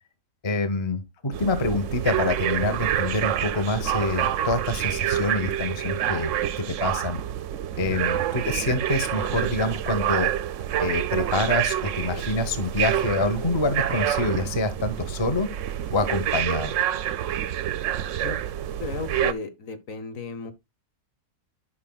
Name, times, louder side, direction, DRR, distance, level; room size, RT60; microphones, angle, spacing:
voice 1, 0.4-6.3 6.6-7.2 7.8-10.3 10.8-15.5 15.9-16.7, left 2 dB, 20° left, 0.8 m, -26 dB
sound 1, 1.3-19.3, right 11 dB, 65° right, 0.8 m, -27 dB
voice 2, 18.8-20.5, left 5 dB, 60° left, 1.4 m, -34 dB
12.5 x 5.6 x 2.3 m
omnidirectional pair, 1.6 m